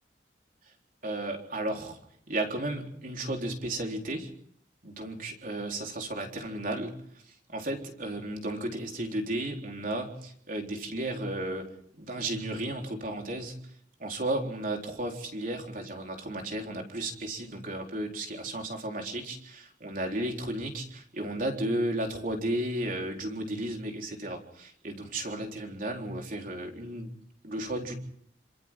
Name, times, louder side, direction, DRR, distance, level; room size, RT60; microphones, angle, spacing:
voice 1, 1.0-2.0 2.3-4.3 4.8-13.6 14.0-27.1 27.4-28.0, right 1 dB, 45° right, 2 dB, 4.0 m, -34 dB
28.0 x 26.0 x 3.8 m, 0.65 s
head